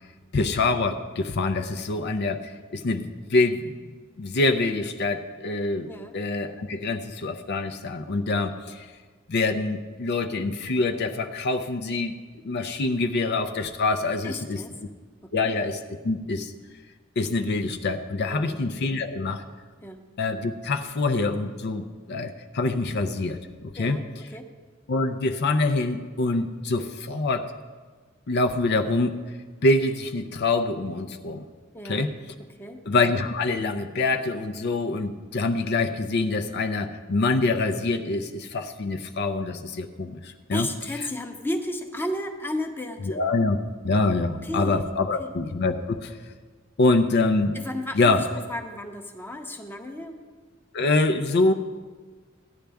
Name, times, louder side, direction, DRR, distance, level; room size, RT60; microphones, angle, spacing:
voice 1, 0.3-3.8 4.2-8.9 9.3-12.2 12.4-14.6 15.3-16.5 17.2-19.4 20.2-24.0 24.9-27.5 28.3-29.2 29.6-31.4 31.8-32.1 32.9-40.7 43.0-43.6 43.8-46.3 46.8-47.5 47.9-48.2 50.7-51.5, left 3 dB, 55° left, 7 dB, 0.5 m, -25 dB
voice 2, 14.2-14.8 15.2-15.6 18.3-18.6 19.8-20.1 23.8-24.5 31.7-32.1 32.5-32.8 40.5-43.2 44.4-44.8 45.2-45.3 47.5-50.2, left 1 dB, 10° left, 4 dB, 0.8 m, -34 dB
15.0 x 10.0 x 3.5 m, 1.4 s
head